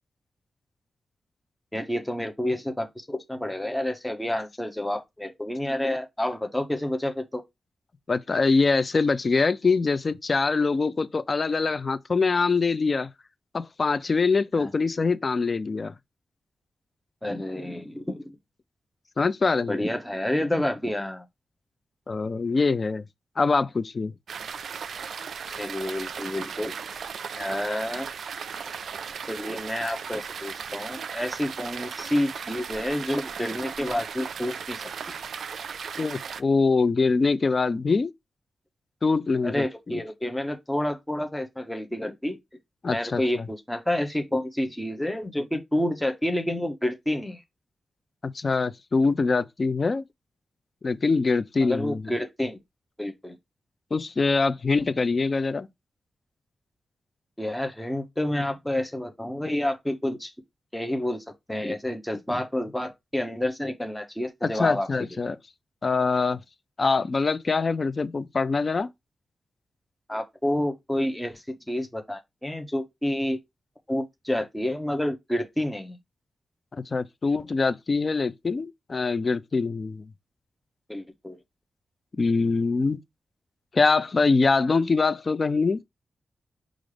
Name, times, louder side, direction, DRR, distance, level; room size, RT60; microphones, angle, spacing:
voice 1, 1.7-7.4 14.6-14.7 17.2-18.4 19.7-21.2 25.5-26.7 27.4-28.1 29.3-34.8 39.4-42.4 42.9-47.4 51.6-52.6 53.0-53.4 57.4-60.3 60.7-61.2 61.5-65.2 70.1-73.4 73.9-76.0 80.9-81.4, left 1 dB, 5° left, 0.8 m, -29 dB
voice 2, 8.1-13.1 13.5-15.9 19.2-19.8 22.1-23.0 23.4-24.1 36.0-38.1 39.0-40.0 42.8-43.2 48.2-50.0 50.8-52.1 53.9-55.7 64.4-65.4 65.8-66.4 66.8-68.9 76.9-80.0 82.2-83.0 83.7-85.8, left 4 dB, 35° left, 0.4 m, -24 dB
sound 1, 24.3-36.4, right 6 dB, 75° right, 0.3 m, -36 dB
5.1 x 2.4 x 3.2 m
wide cardioid pair, 150°, 0 cm